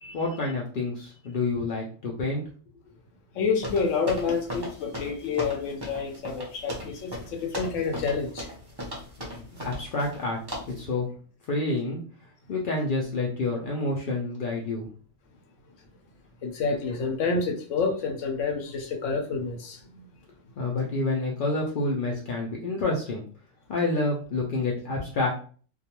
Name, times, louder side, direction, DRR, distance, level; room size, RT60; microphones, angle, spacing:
voice 1, 0.1-2.4 9.2-10.4 10.7-11.1 11.5-12.0 12.5-14.9 20.6-23.2 23.7-25.3, left 2 dB, 85° left, 0.4 m, -28 dB
voice 2, 3.3-8.5 16.4-20.1, left 5 dB, 70° left, 0.8 m, -28 dB
sound 1, 3.6-10.2 10.5-10.8, equal, 35° right, 0.4 m, -37 dB
2.3 x 2.2 x 2.8 m
omnidirectional pair, 1.5 m